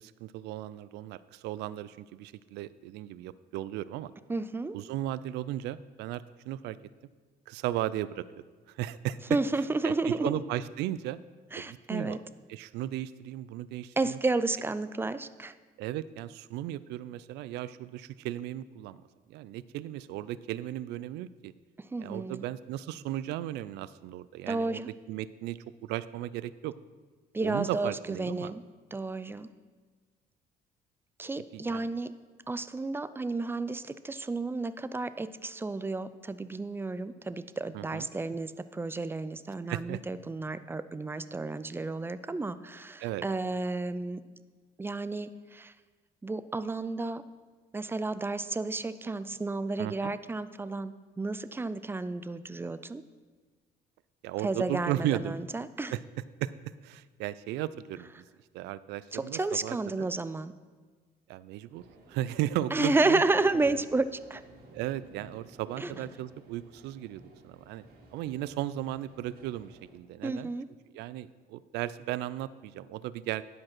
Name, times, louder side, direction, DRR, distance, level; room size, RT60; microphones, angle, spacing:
voice 1, 0.0-4.1 4.7-6.8 7.5-8.2 8.7-9.2 9.8-11.2 11.6-12.2 12.5-14.2 15.8-19.0 19.3-21.5 22.0-24.8 25.1-26.7 27.4-28.5 31.5-31.9 37.7-38.1 39.7-40.0 43.0-43.2 49.8-50.1 54.2-55.4 55.9-56.0 56.4-58.1 58.5-60.1 61.3-61.8 62.1-63.2 63.6-63.8 64.7-67.8 68.1-70.5 70.9-73.4, right 13 dB, 85° right, 17 dB, 0.4 m, -35 dB
voice 2, 4.3-4.8 9.3-10.4 11.5-12.2 14.0-15.5 21.8-22.4 24.5-24.9 27.3-28.6 28.9-29.5 31.2-32.1 32.5-44.2 44.8-45.7 46.2-47.2 47.7-53.0 54.4-55.9 59.1-60.5 62.7-64.4 65.8-65.9 70.2-70.7, right 3 dB, 15° right, 13 dB, 0.4 m, -31 dB
sound 1, 61.7-69.9, right 1 dB, 65° right, 2.2 m, -54 dB
11.0 x 5.1 x 6.0 m, 1.4 s
cardioid pair, 110°, 17 cm